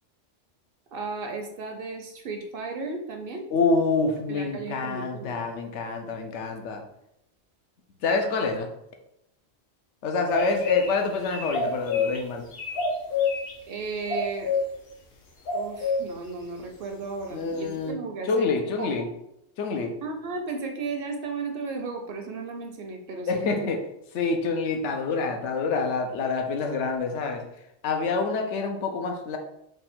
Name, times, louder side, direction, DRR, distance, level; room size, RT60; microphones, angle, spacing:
voice 1, 0.9-3.5 4.3-5.5 13.7-14.5 15.5-18.5 18.8-19.1 20.0-23.7, right 4 dB, 60° right, 3 dB, 0.7 m, -35 dB
voice 2, 3.5-6.8 8.0-8.7 10.0-12.4 17.3-18.0 18.2-19.1 19.6-20.0 23.3-23.8 24.1-27.4 27.8-29.4, left 4 dB, 85° left, 4 dB, 1.0 m, -27 dB
sound 1, 10.3-11.0 11.2-12.2 12.5-13.5 14.1-14.6 15.5-16.0, left 5 dB, 60° left, 0.9 m, -26 dB
3.5 x 2.3 x 4.1 m, 0.81 s
omnidirectional pair, 1.2 m